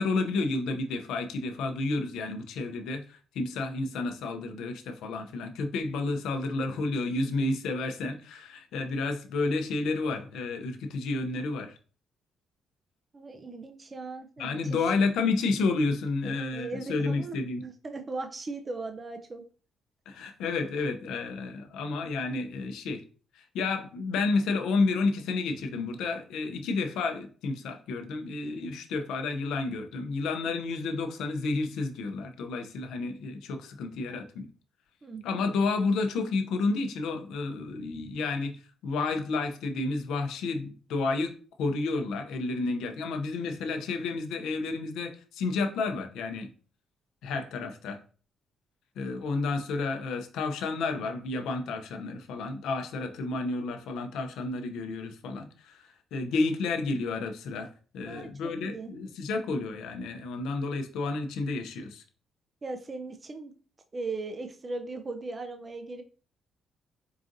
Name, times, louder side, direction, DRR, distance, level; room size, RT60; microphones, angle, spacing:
voice 1, 0.0-11.8 14.4-17.6 20.1-23.0 23.3-34.5 35.2-46.5 47.2-48.0 49.0-62.0, left 3 dB, 85° left, 5 dB, 0.5 m, -31 dB
voice 2, 13.1-14.8 16.2-17.4 17.6-19.4 35.0-35.4 58.1-58.9 62.6-63.5 63.9-66.0, right 3 dB, 30° right, 6 dB, 0.4 m, -38 dB
4.8 x 2.5 x 2.6 m, 0.40 s
cardioid pair, 90°, 0 cm